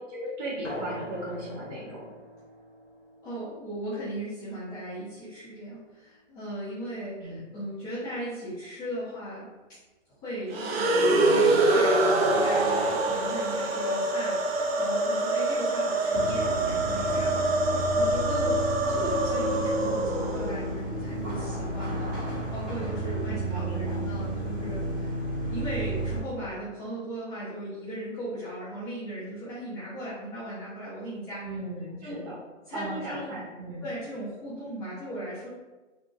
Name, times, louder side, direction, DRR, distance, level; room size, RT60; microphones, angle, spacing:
voice 1, 0.0-2.1 7.2-7.4 23.2-24.0 31.4-32.4 32.7-33.8, right 1 dB, 35° right, -5 dB, 1.0 m, -37 dB
sound 1, 0.6-5.7, equal, 90° left, 1.1 m, -43 dB
voice 2, 3.2-9.5 10.2-17.5 17.9-18.6 18.9-25.1 25.5-31.4 32.0-32.2 32.7-33.3 33.8-35.5, right 1 dB, 10° left, -13 dB, 0.5 m, -37 dB
sound 2, 10.5-20.7, right 2 dB, 55° right, 0.6 m, -25 dB
sound 3, 16.1-26.2, right 1 dB, 75° right, 1.5 m, -32 dB
3.8 x 2.2 x 2.4 m, 1.2 s
hypercardioid pair, 135°, 37 cm